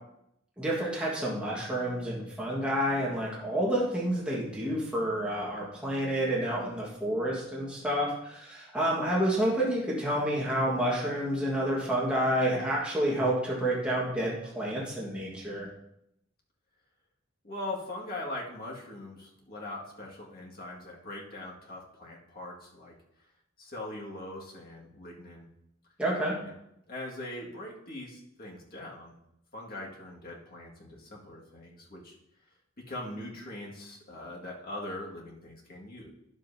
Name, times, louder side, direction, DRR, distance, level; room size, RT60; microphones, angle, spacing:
voice 1, 0.6-15.7 26.0-26.3, right 1 dB, 5° right, -6 dB, 1.6 m, -29 dB
voice 2, 17.4-22.9 23.6-25.5 26.4-26.5 26.9-29.2 29.5-32.1 32.8-36.1, left 1 dB, 45° left, -3 dB, 1.9 m, -41 dB
11.0 x 7.5 x 2.8 m, 0.79 s
head